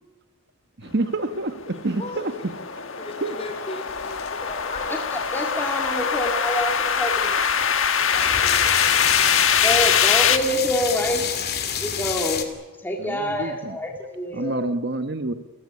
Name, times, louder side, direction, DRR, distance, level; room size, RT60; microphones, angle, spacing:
voice 1, 0.8-2.3 3.2-3.3 13.0-13.8 14.3-15.3, right 2 dB, 55° right, 9 dB, 1.1 m, -27 dB
sound 1, 1.3-10.4, left 7 dB, 70° left, 1.5 m, -23 dB
voice 2, 1.7-2.5 2.9-5.2 7.8-9.8, left 1 dB, 30° left, 7 dB, 4.1 m, -40 dB
sound 2, 3.9-5.2 5.8-5.9 6.2-12.4, left 8 dB, 50° left, 2.6 m, -28 dB
voice 3, 4.9-7.4 9.6-11.3 11.8-12.5 12.8-14.6, left 1 dB, 10° left, 1 dB, 2.1 m, -26 dB
29.0 x 15.5 x 9.8 m, 1.2 s
head